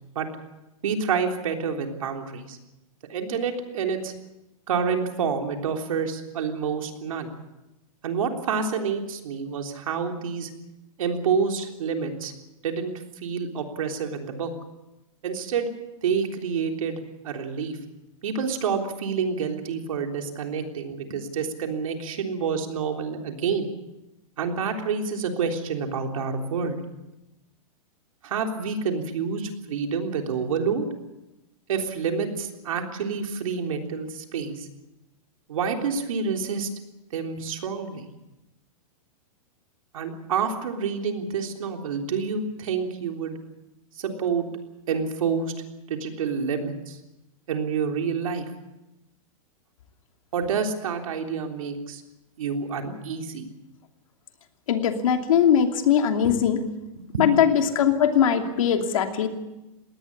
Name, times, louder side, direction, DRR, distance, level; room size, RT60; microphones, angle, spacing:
voice 1, 0.8-2.6 3.1-4.1 4.7-7.3 8.0-10.5 11.0-12.3 12.6-14.5 15.2-15.7 16.0-17.8 18.2-23.7 24.4-26.8 28.2-30.9 31.7-34.7 35.5-36.7 37.1-38.1 39.9-43.4 44.0-44.5 44.9-45.5 45.9-47.0 47.5-48.5 50.3-52.0 52.4-53.5 57.1-57.3, right 6 dB, 70° right, 3 dB, 3.6 m, -28 dB
voice 2, 54.7-56.6 57.2-59.3, left 8 dB, 65° left, 5 dB, 2.8 m, -20 dB
21.0 x 17.5 x 8.6 m, 0.98 s
supercardioid pair, 175°, 18 cm